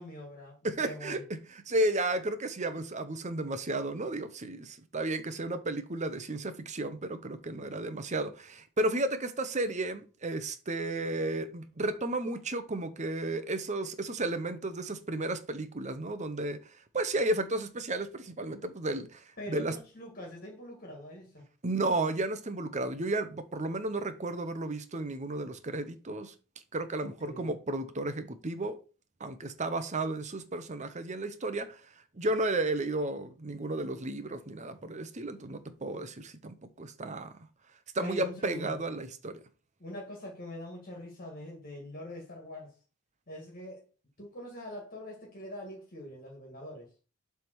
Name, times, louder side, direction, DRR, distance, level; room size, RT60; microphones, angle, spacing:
voice 1, 0.0-1.2 19.4-21.5 27.0-27.6 38.0-38.8 39.8-42.8 43.3-43.9 44.2-46.9, equal, 40° left, 2.0 m, -43 dB
voice 2, 0.6-1.4 1.7-16.6 16.9-19.7 21.6-26.3 26.7-28.8 29.2-31.8 32.1-37.3 37.9-39.4, right 2 dB, 35° right, 0.8 m, -33 dB
7.6 x 3.5 x 6.1 m
head